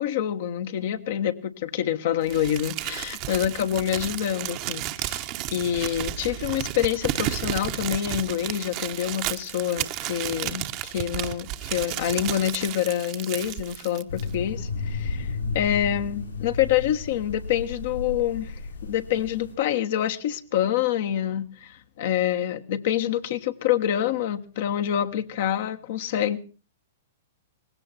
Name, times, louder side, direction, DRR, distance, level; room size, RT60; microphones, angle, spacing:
voice 1, 0.0-26.4, left 11 dB, 60° left, 1.3 m, -27 dB
Crumpling crinkling, 2.3-14.3, right 15 dB, 40° right, 1.0 m, -32 dB
sound 1, 14.1-19.5, left 4 dB, 90° left, 6.7 m, -33 dB
19.0 x 16.5 x 4.2 m
hypercardioid pair, 115°, 0 cm